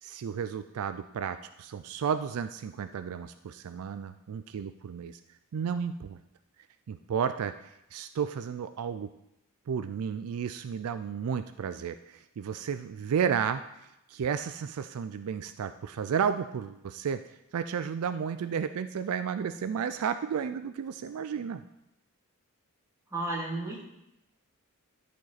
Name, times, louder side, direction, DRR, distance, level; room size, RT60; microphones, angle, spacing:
voice 1, 0.0-5.2 5.5-6.2 6.9-9.1 9.7-17.2 17.5-21.6, right 7 dB, 70° right, 11 dB, 0.4 m, -32 dB
voice 2, 23.1-23.8, right 2 dB, 15° right, -5 dB, 2.3 m, -32 dB
12.5 x 5.3 x 4.1 m, 0.86 s
head